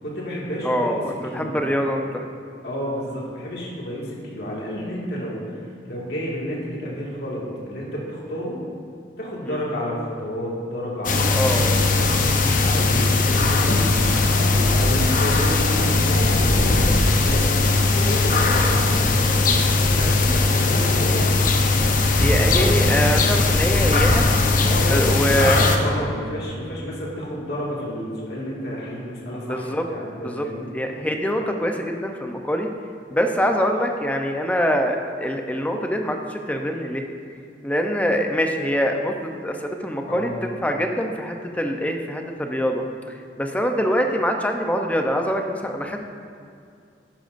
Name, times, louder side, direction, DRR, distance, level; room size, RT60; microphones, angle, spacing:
voice 1, 0.0-1.0 1.3-1.6 2.6-5.6 5.9-8.6 9.2-12.0 12.6-21.4 22.1-22.7 24.6-30.7 40.1-40.3, equal, 65° left, -5 dB, 2.1 m, -30 dB
voice 2, 0.6-2.2 9.4-9.6 11.3-11.7 22.2-24.2 24.9-25.6 29.4-29.9 30.2-30.5 30.7-32.7 33.1-37.0 37.6-42.8 43.4-46.1, equal, 10° left, 3 dB, 0.6 m, -24 dB
sound 1, 11.0-25.8, left 3 dB, 50° left, 0.8 m, -19 dB
12.0 x 10.5 x 2.6 m, 2.4 s
head